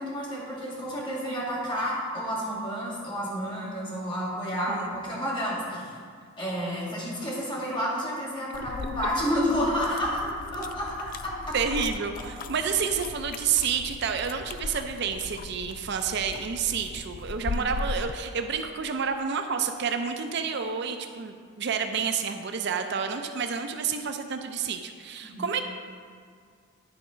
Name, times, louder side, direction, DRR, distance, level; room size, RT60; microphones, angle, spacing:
voice 1, 0.0-5.9 6.4-11.6 17.4-17.6 25.2-25.5, equal, 25° left, -6 dB, 2.2 m, -30 dB
sound 1, 8.5-18.2, left 3 dB, 45° left, 0.3 m, -38 dB
voice 2, 11.5-25.6, right 6 dB, 55° right, 6 dB, 0.5 m, -29 dB
11.0 x 4.8 x 5.0 m, 2.1 s
head